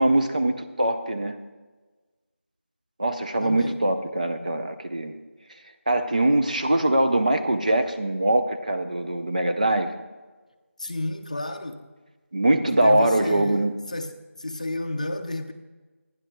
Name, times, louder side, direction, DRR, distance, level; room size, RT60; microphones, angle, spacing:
voice 1, 0.0-1.4 3.0-5.2 5.9-10.0 12.3-13.7, right 1 dB, 35° right, 6 dB, 0.6 m, -22 dB
voice 2, 3.4-3.8 10.8-11.8 12.7-15.5, left 1 dB, 30° left, 6 dB, 0.6 m, -31 dB
23.0 x 10.5 x 2.2 m, 1.3 s
figure-of-eight pair, 170°, 8 cm